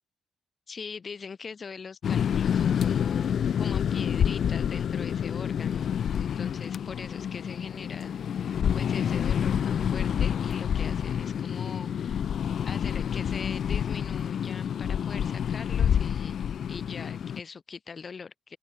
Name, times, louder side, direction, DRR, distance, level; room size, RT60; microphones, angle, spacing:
voice 1, 0.7-5.9 6.2-8.2 8.7-12.2 12.7-18.6, left 5 dB, 40° left, 5.7 m, -42 dB
sound 1, 2.0-17.4, left 8 dB, 60° left, 1.1 m, -28 dB
cardioid pair, 90°, 0 cm